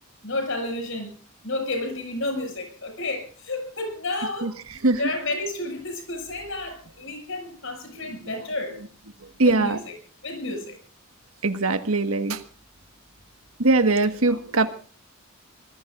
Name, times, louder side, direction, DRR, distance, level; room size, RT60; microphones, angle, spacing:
voice 1, 0.2-1.1 1.4-4.6 5.0-8.8 9.4-9.9 10.2-10.8, left 2 dB, 65° left, 4 dB, 6.6 m, -31 dB
voice 2, 9.4-9.8 11.4-12.4 13.6-14.7, right 3 dB, 80° right, 8 dB, 1.6 m, -21 dB
26.0 x 19.5 x 2.6 m, 0.41 s
head